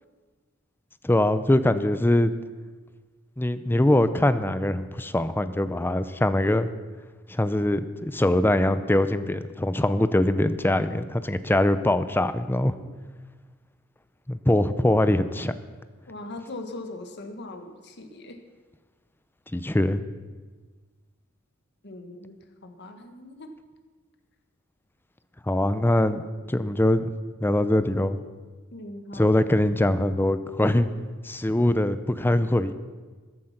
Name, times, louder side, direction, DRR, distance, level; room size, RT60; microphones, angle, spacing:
voice 1, 1.0-2.3 3.4-6.7 7.3-12.8 14.3-15.5 19.5-20.0 25.5-26.2 26.5-27.1 27.4-28.2 29.1-30.9 31.2-32.7, left 1 dB, 10° left, 12 dB, 0.6 m, -22 dB
voice 2, 16.1-18.4 21.8-23.5 28.7-29.5, left 2 dB, 55° left, 6 dB, 1.6 m, -40 dB
14.5 x 11.5 x 5.9 m, 1.4 s
head